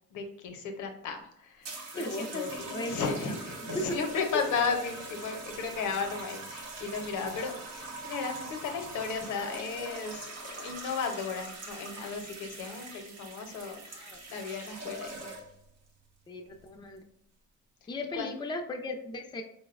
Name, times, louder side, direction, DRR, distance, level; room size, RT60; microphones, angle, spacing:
voice 1, 0.1-15.3 18.1-18.3, left 5 dB, 80° left, 5 dB, 0.6 m, -35 dB
sound 1, 1.6-15.7 16.5-16.9, right 2 dB, 65° right, 0.8 m, -42 dB
voice 2, 1.9-3.2 3.7-4.0 4.3-4.4 14.0-14.2 16.3-17.0 17.9-19.4, left 1 dB, 15° left, 3 dB, 0.4 m, -36 dB
4.3 x 2.0 x 2.3 m, 0.76 s
cardioid pair, 90°, 30 cm